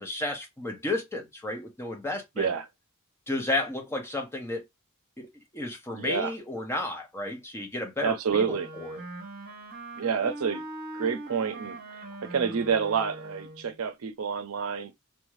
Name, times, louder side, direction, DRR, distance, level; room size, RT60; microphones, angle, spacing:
voice 1, 0.0-2.5 3.3-4.6 5.2-5.3 5.5-9.0, left 2 dB, 10° left, 0.6 m, -32 dB
voice 2, 5.9-6.3 8.0-8.7 10.0-10.6 10.9-11.8 12.3-14.9, right 6 dB, 75° right, 0.5 m, -28 dB
Wind instrument woodwind instrument, 8.4-13.8, right 2 dB, 45° right, 0.8 m, -41 dB
2.6 x 2.2 x 3.1 m
head